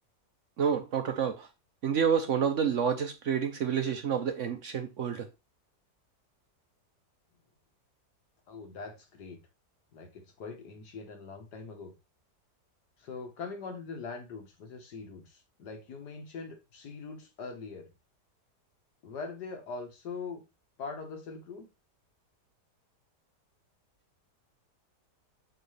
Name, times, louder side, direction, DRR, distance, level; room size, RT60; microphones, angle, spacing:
voice 1, 0.6-1.5 1.8-5.3, right 7 dB, 60° right, 0.8 m, -29 dB
voice 2, 8.5-9.4 9.9-11.9 13.0-17.9 19.0-20.4 20.8-21.7, left 4 dB, 75° left, 1.9 m, -42 dB
6.6 x 4.5 x 3.2 m
omnidirectional pair, 1.8 m